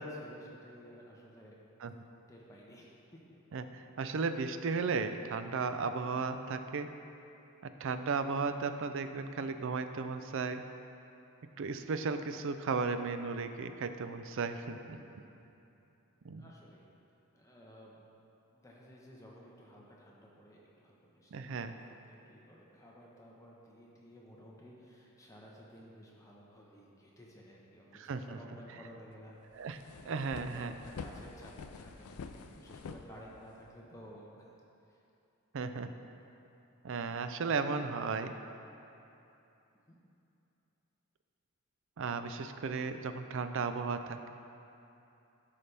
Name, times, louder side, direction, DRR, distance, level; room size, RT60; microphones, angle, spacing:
voice 1, 0.0-1.6 2.3-3.4 14.8-15.5 16.3-16.9 17.3-17.9 18.5-29.4 30.0-30.2 30.5-34.5 34.9-35.0 39.9-40.0, equal, 15° left, -4 dB, 1.0 m, -54 dB
voice 2, 3.5-6.9 7.8-10.6 11.6-15.0 16.2-16.5 21.3-21.7 27.9-28.4 29.5-29.8 30.0-30.7 35.5-35.9 36.8-38.3 42.0-44.3, right 4 dB, 60° right, 9 dB, 0.4 m, -35 dB
sound 1, 29.1-29.2 29.5-33.8, left 5 dB, 80° left, 0.4 m, -47 dB
12.5 x 5.6 x 3.4 m, 2.9 s
head